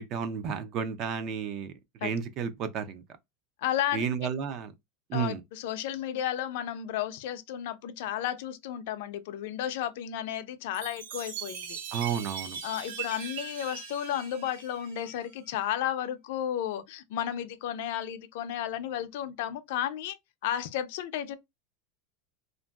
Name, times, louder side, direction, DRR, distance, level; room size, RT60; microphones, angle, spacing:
voice 1, 0.0-1.7 2.0-3.0 3.9-4.7 5.1-5.4 11.9-12.6, right 7 dB, 35° right, 0.4 m, -32 dB
voice 2, 3.6-4.3 5.1-11.8 12.6-20.2 20.4-21.4, left 11 dB, 65° left, 0.4 m, -33 dB
Chime, 10.7-15.4, right 7 dB, 70° right, 0.9 m, -40 dB
2.8 x 2.5 x 2.2 m
supercardioid pair, 155°, 0 cm